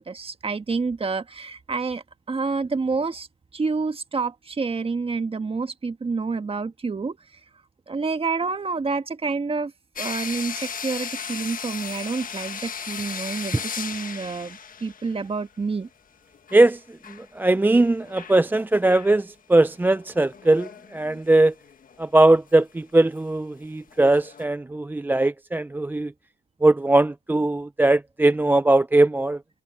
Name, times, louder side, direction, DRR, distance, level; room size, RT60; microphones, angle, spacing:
voice 1, 0.0-3.3 3.5-7.2 7.9-9.7 10.0-15.9, right 4 dB, 30° right, 1.6 m, -28 dB
sound 1, 10.0-15.4 15.7-15.8 16.3-17.3 17.7-18.5 18.9-19.2 19.8-22.0 22.5-22.6 23.2-23.3 23.9-24.4, left 7 dB, 45° left, 1.6 m, -36 dB
voice 2, 17.4-21.5 22.0-26.1 26.6-29.4, right 2 dB, 10° right, 0.4 m, -20 dB
cardioid pair, 90°, 20 cm